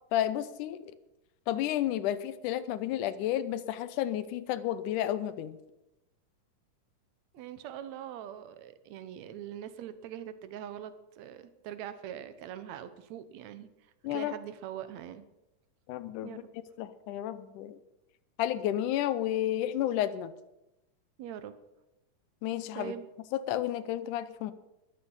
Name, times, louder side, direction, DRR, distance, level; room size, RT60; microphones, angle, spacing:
voice 1, 0.1-0.9 1.5-5.6 14.0-14.3 15.9-16.4 16.8-17.8 18.4-20.3 22.4-22.9 23.3-24.5, left 12 dB, 75° left, 14 dB, 2.1 m, -31 dB
voice 2, 7.3-13.7 14.0-15.2 16.2-16.5 21.2-21.5 22.8-23.1, right 10 dB, 70° right, 12 dB, 1.9 m, -42 dB
14.5 x 12.0 x 5.5 m, 0.93 s
omnidirectional pair, 3.8 m